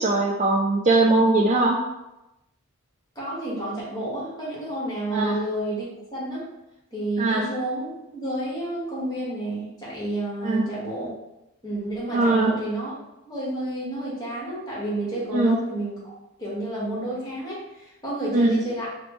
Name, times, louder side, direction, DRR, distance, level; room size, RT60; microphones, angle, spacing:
voice 1, 0.0-1.8 5.1-5.4 7.2-7.4 10.4-10.6 12.1-12.5 15.3-15.6 18.3-18.6, right 2 dB, 35° right, 0 dB, 0.3 m, -20 dB
voice 2, 3.1-6.5 6.9-11.1 11.6-13.0 13.3-18.9, right 1 dB, 20° left, -7 dB, 1.2 m, -30 dB
4.1 x 2.1 x 3.0 m, 0.93 s
head